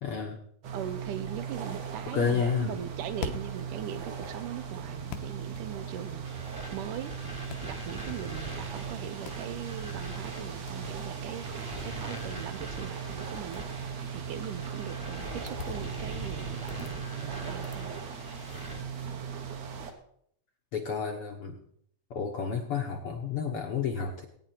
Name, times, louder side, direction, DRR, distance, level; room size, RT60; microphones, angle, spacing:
voice 1, 0.0-0.5 2.1-2.7 20.7-21.6 22.1-24.2, left 6 dB, 60° left, 3 dB, 1.5 m, -30 dB
sound 1, 0.6-19.9, right 7 dB, 60° right, 2.4 m, -38 dB
voice 2, 0.7-6.3 6.7-7.1 7.6-17.9, right 10 dB, 75° right, 11 dB, 2.3 m, -40 dB
sound 2, 2.8-19.2, left 6 dB, 80° left, 2.5 m, -48 dB
sound 3, 6.2-18.8, equal, 15° right, 1.2 m, -44 dB
19.5 x 9.4 x 4.5 m, 0.68 s
omnidirectional pair, 3.9 m